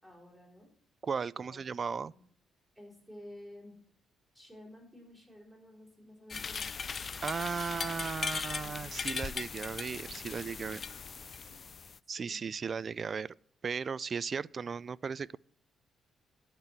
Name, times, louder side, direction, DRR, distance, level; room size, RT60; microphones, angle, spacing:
voice 1, 0.0-0.7 1.4-1.6 1.8-2.2 2.7-3.7 4.3-6.8 8.2-9.1 11.4-11.6 12.2-12.4, left 1 dB, 5° left, 4.8 m, -53 dB
voice 2, 1.0-2.1 7.2-10.8 12.1-13.3 13.6-15.4, right 6 dB, 40° right, 0.3 m, -36 dB
sound 1, 6.3-12.0, left 5 dB, 40° left, 0.3 m, -39 dB
12.0 x 4.5 x 8.2 m
cardioid pair, 90°, 0 cm